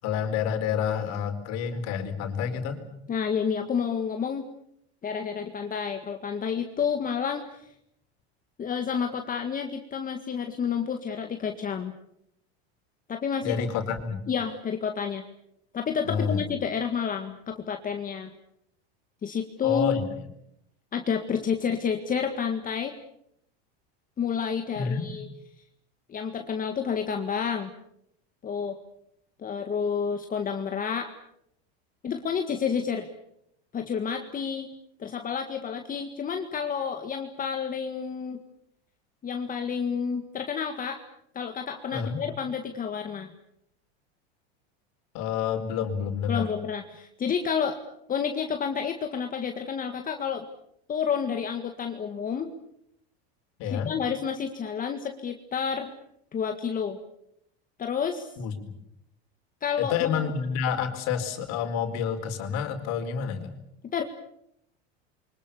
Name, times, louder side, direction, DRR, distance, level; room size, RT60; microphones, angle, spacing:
voice 1, 0.0-2.9 13.4-14.2 16.0-16.4 19.6-20.2 24.7-25.1 41.9-42.2 45.1-46.5 53.6-53.9 58.4-58.5 59.8-63.5, left 7 dB, 55° left, 6 dB, 4.5 m, -29 dB
voice 2, 3.1-4.4 5.0-7.6 8.6-11.9 13.1-13.6 14.3-15.2 15.7-18.3 19.2-20.0 20.9-23.0 24.2-25.3 26.1-27.7 28.4-28.8 29.4-31.1 32.0-33.1 33.7-34.7 35.0-38.4 39.2-41.0 41.3-43.3 46.3-47.8 48.1-50.4 50.9-52.5 53.7-55.9 56.3-57.0 57.8-58.3 59.6-60.2 63.9-64.0, left 7 dB, 25° left, 5 dB, 1.8 m, -30 dB
28.5 x 24.5 x 7.0 m, 0.77 s
supercardioid pair, 120°, 32 cm